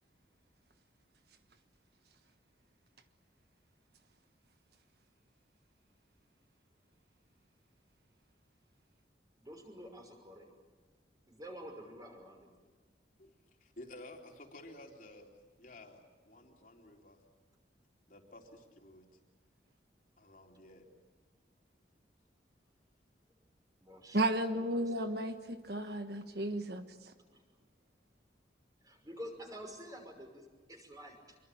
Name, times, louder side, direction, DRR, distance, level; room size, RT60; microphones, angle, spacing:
voice 1, 9.4-10.5 11.3-12.5 23.8-25.3 27.3-27.4 28.8-31.4, equal, 20° right, 3 dB, 5.8 m, -49 dB
voice 2, 13.6-17.2 18.1-19.1 20.2-20.9, left 1 dB, 45° left, 2 dB, 3.6 m, -53 dB
voice 3, 24.1-26.9, right 1 dB, 60° right, 7 dB, 1.4 m, -33 dB
27.0 x 23.5 x 8.7 m, 1.4 s
head